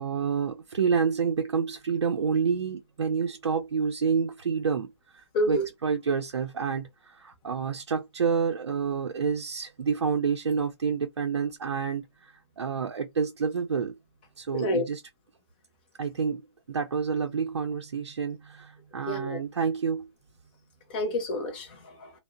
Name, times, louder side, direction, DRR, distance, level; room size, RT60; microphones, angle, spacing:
voice 1, 0.0-14.0 14.4-15.0 16.0-16.4 16.7-20.1, right 6 dB, 75° right, 0.5 m, -28 dB
voice 2, 5.3-5.7 14.5-14.8 19.1-19.4 20.9-22.1, left 1 dB, 20° left, 0.5 m, -29 dB
2.7 x 2.0 x 2.4 m
hypercardioid pair, 160°, 14 cm